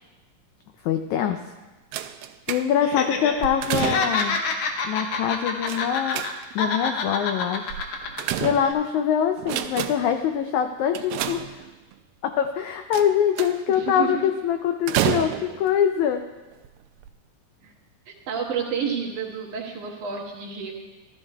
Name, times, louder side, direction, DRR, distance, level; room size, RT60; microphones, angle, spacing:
voice 1, 0.8-1.4 2.5-4.4 4.8-6.2 6.6-7.8 8.4-11.7 12.2-16.2, left 9 dB, 85° left, 6 dB, 1.7 m, -24 dB
sound 1, 1.9-3.0 3.4-4.4 5.7-6.7 7.7-9.0 9.4-10.2 10.9-11.9 12.9-13.8 14.9-15.7 16.5-16.7 17.0-17.1, right 12 dB, 85° right, 2.2 m, -29 dB
Laughter, 2.8-3.3 3.6-6.3 6.6-8.2 8.6-8.7, left 4 dB, 70° left, 2.2 m, -27 dB
voice 2, 13.7-14.2 15.3-15.4 17.6-17.7 18.1-20.7, right 6 dB, 65° right, -2 dB, 2.7 m, -30 dB
15.0 x 13.0 x 2.3 m, 1.2 s
omnidirectional pair, 4.0 m